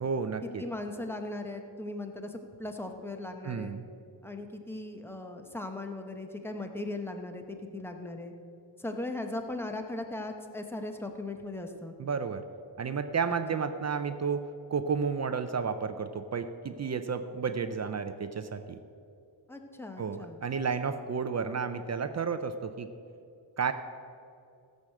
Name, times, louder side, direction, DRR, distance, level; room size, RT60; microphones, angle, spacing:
voice 1, 0.0-0.6 3.4-3.8 12.0-12.4 12.8-14.4 14.7-18.8 20.0-22.9 23.6-23.7, right 6 dB, 35° right, 9 dB, 0.5 m, -32 dB
voice 2, 0.6-3.7 4.2-8.3 8.8-11.9 13.5-13.7 19.5-20.4, left 2 dB, 5° left, 5 dB, 0.9 m, -38 dB
15.5 x 6.4 x 7.6 m, 2.5 s
wide cardioid pair, 165°, 46 cm